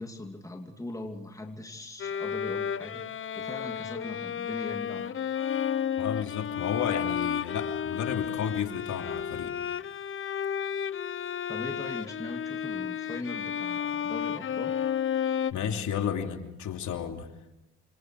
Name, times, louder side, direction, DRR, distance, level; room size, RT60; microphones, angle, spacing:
voice 1, 0.0-3.1 3.3-5.2 11.5-14.8, left 2 dB, 10° left, 3 dB, 2.8 m, -40 dB
Bowed string instrument, 2.0-15.5, left 8 dB, 45° left, 0.9 m, -32 dB
voice 2, 6.0-9.5 15.5-17.3, left 8 dB, 75° left, 5 dB, 3.0 m, -32 dB
28.5 x 26.0 x 4.8 m, 0.91 s
cardioid pair, 90°, 30 cm